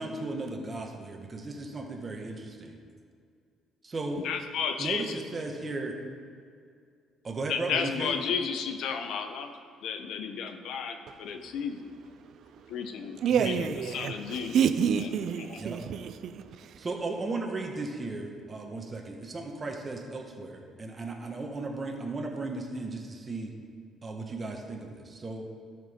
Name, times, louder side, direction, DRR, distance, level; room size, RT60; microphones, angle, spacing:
voice 1, 0.0-2.8 3.8-4.2 4.8-6.0 7.2-8.2 13.4-13.5 15.6-15.8 16.8-23.5 24.0-25.5, right 2 dB, 30° right, 1 dB, 1.4 m, -35 dB
voice 2, 4.2-5.0 7.5-9.5 9.8-11.9 12.7-13.2 13.5-13.6 13.9-14.6 15.0-15.1 15.4-15.6, left 6 dB, 75° left, 7 dB, 0.8 m, -33 dB
voice 3, 13.2-16.9, right 7 dB, 65° right, 11 dB, 0.5 m, -29 dB
12.5 x 6.1 x 3.7 m, 2.3 s
cardioid pair, 85°, 0 cm